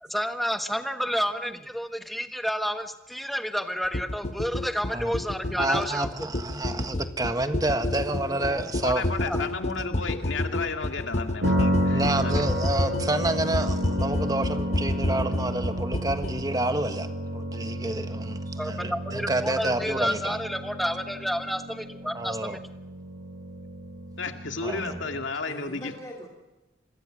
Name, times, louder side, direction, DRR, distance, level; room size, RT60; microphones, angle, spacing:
voice 1, 0.0-6.1 9.2-9.4 18.6-22.6, equal, ahead, 1.2 m, -30 dB
sound 1, 3.9-16.4, left 1 dB, 35° left, 1.0 m, -30 dB
voice 2, 5.5-9.0 11.9-20.4 22.1-22.6 24.6-25.0, right 2 dB, 20° right, 1.4 m, -29 dB
voice 3, 7.6-9.0 9.3-9.7 25.4-26.3, equal, 15° left, 3.2 m, -42 dB
voice 4, 8.8-12.5 24.2-25.9, left 4 dB, 80° left, 2.2 m, -33 dB
sound 2, 11.4-25.3, equal, 85° right, 5.2 m, -31 dB
27.0 x 21.5 x 6.3 m
head